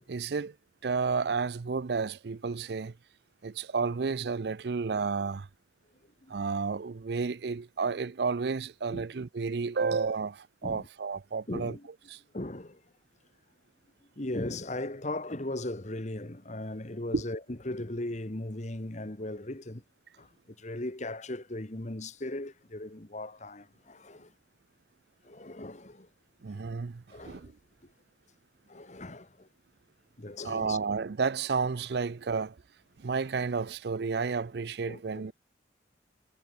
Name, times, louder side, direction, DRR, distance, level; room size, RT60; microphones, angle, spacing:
voice 1, 0.1-0.5 0.8-2.9 3.4-5.5 6.3-11.8 12.1-12.2 17.1-17.2 26.4-27.5 30.4-32.6 33.0-35.3, right 5 dB, 60° right, 0.5 m, -31 dB
voice 2, 11.5-11.9 12.3-12.8 14.2-19.8 20.2-24.3 25.2-26.1 27.1-27.5 27.8-27.9 28.7-29.5 30.2-30.8 34.9-35.3, left 1 dB, 40° left, 1.5 m, -38 dB
head